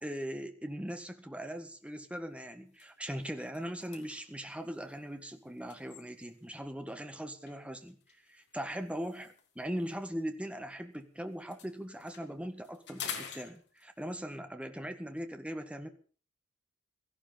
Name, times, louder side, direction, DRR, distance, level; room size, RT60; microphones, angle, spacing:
voice 1, 0.0-8.0 8.3-15.9, equal, 5° right, 7 dB, 1.7 m, -40 dB
sound 1, 1.5-1.7 2.2-2.3 2.7-6.6 7.5-11.0 11.3-14.2, left 7 dB, 55° left, 3.0 m, -48 dB
17.0 x 14.5 x 5.5 m, 0.42 s
head